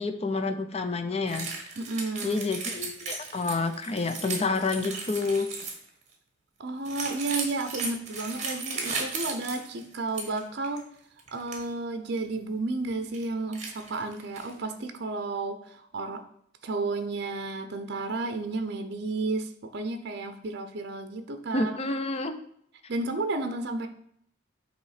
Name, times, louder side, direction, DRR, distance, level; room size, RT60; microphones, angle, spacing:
voice 1, 0.0-1.5 2.2-5.5 21.5-22.3, left 3 dB, 30° left, 8 dB, 0.5 m, -29 dB
sound 1, 1.3-5.9 6.8-10.4 10.6-10.8 11.2-11.6 12.2-12.3 12.8-13.2 13.5-14.6, right 4 dB, 35° right, 1.3 m, -36 dB
voice 2, 1.8-2.4 6.6-10.8 11.3-16.2 16.6-21.8 22.9-23.9, right 3 dB, 55° right, 7 dB, 0.6 m, -32 dB
8.2 x 3.1 x 4.9 m, 0.67 s
head